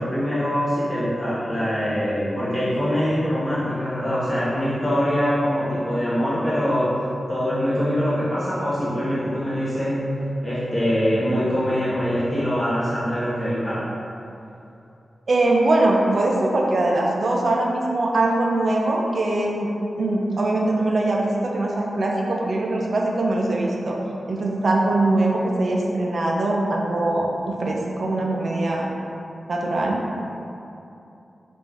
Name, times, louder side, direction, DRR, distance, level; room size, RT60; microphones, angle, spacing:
voice 1, 0.0-7.0 7.3-10.0 10.4-13.8, equal, 15° left, -11 dB, 1.1 m, -23 dB
voice 2, 15.3-19.7 20.0-24.0 24.3-28.9 29.5-30.0, right 2 dB, 55° right, -2 dB, 0.4 m, -22 dB
3.1 x 2.5 x 3.5 m, 2.8 s
wide cardioid pair, 135°, 0 cm